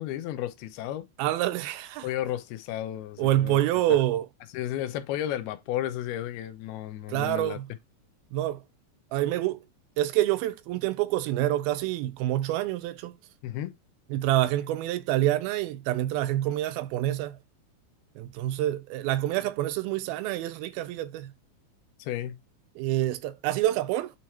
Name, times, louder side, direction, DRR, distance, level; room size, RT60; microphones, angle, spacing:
voice 1, 0.0-1.1 2.0-3.6 3.9-4.0 4.5-7.6 13.4-13.7 22.0-22.3, left 12 dB, 85° left, 2.7 m, -33 dB
voice 2, 1.2-2.1 3.2-4.3 7.1-7.7 8.3-8.6 9.1-9.6 10.0-13.2 14.1-17.4 18.2-21.3 22.8-24.1, right 14 dB, 80° right, 2.4 m, -27 dB
8.4 x 3.2 x 4.3 m
omnidirectional pair, 4.5 m